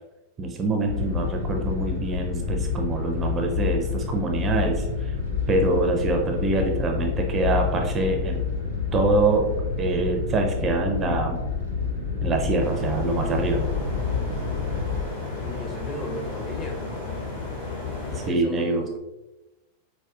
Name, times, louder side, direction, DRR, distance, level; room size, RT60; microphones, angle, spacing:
voice 1, 0.4-5.2 5.5-8.4 8.9-11.4 12.2-13.7 18.3-18.9, right 2 dB, 25° right, 2 dB, 0.4 m, -25 dB
sound 1, 0.8-15.0, left 6 dB, 80° left, 0.9 m, -28 dB
sound 2, 12.6-18.3, left 3 dB, 55° left, 1.3 m, -32 dB
voice 2, 15.4-16.9 18.1-19.0, left 1 dB, 25° left, 1 dB, 0.6 m, -36 dB
4.7 x 2.1 x 2.3 m, 0.98 s
figure-of-eight pair, 90°, 0 cm